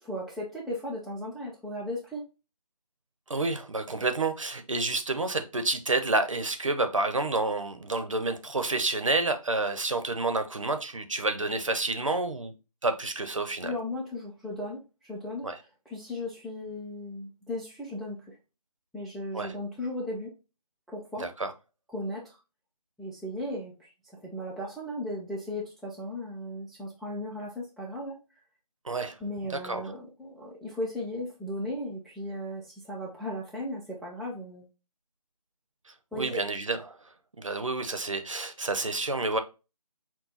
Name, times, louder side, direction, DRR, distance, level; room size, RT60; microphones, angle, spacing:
voice 1, 0.0-2.2 13.6-15.5 15.9-18.4 18.9-20.3 20.9-21.3 21.9-22.2 23.0-28.2 29.2-34.7 36.1-36.4, left 1 dB, ahead, -6 dB, 0.3 m, -36 dB
voice 2, 3.3-12.5 12.8-13.7 15.4-15.6 19.3-19.5 21.2-21.5 28.8-29.2 29.5-29.8 36.1-37.0 37.4-39.4, right 2 dB, 55° right, 8 dB, 0.8 m, -29 dB
6.2 x 2.2 x 3.9 m, 0.30 s
figure-of-eight pair, 175°, 20 cm